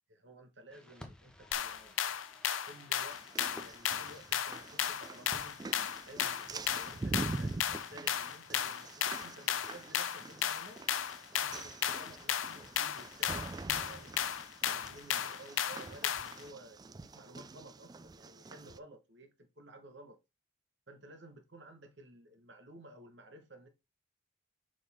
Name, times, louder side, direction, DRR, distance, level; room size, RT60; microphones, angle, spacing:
voice 1, 0.1-2.0 2.7-5.6 6.0-10.8 11.4-14.1 14.6-20.2 20.9-23.7, right 1 dB, 60° right, 1.4 m, -54 dB
Fireworks, 0.7-10.9, equal, 5° left, 1.1 m, -57 dB
sound 1, 1.5-16.4, left 9 dB, 85° left, 0.6 m, -35 dB
sound 2, 3.1-18.8, right 3 dB, 20° right, 0.3 m, -45 dB
6.5 x 5.2 x 3.6 m
head